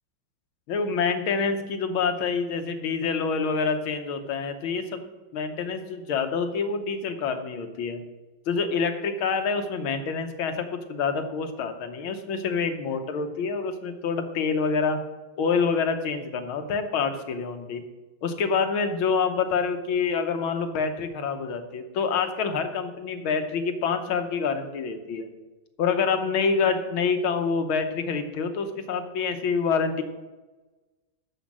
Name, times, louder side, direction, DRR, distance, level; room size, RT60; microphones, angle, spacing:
voice 1, 0.7-5.0 5.3-8.0 8.5-15.0 15.4-17.8 18.2-25.3 25.8-30.0, left 5 dB, 75° left, 7 dB, 1.8 m, -27 dB
12.5 x 5.0 x 7.5 m, 1.2 s
omnidirectional pair, 2.3 m